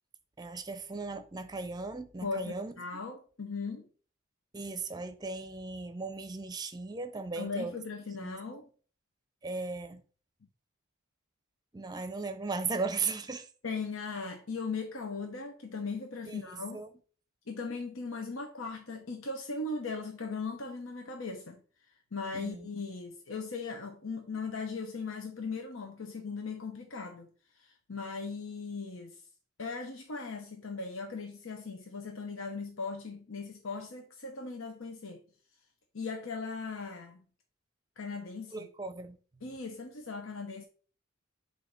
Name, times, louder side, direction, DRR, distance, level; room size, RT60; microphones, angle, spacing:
voice 1, 0.4-2.7 4.5-7.7 8.2-8.4 9.4-10.0 11.7-13.5 16.3-16.9 22.3-22.7 38.5-39.2, right 4 dB, 20° right, 0.6 m, -37 dB
voice 2, 2.2-3.9 7.4-8.7 13.6-16.8 17.5-21.6 22.1-27.3 27.9-29.2 29.6-35.2 35.9-37.2 38.0-38.7 39.4-40.6, left 4 dB, 80° left, 0.9 m, -38 dB
7.5 x 2.8 x 5.2 m
head